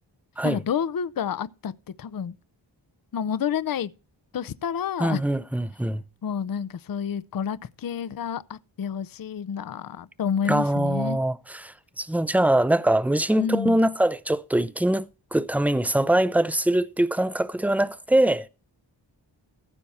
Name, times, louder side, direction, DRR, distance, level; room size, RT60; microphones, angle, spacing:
voice 1, 0.4-1.7 2.0-2.3 3.1-3.9 4.3-5.2 6.2-11.2 13.4-13.8, left 7 dB, 50° left, 0.6 m, -29 dB
voice 2, 5.0-6.0 10.5-15.1 15.3-18.5, right 1 dB, 5° right, 0.5 m, -23 dB
15.0 x 6.8 x 4.2 m
wide cardioid pair, 110°, 45 cm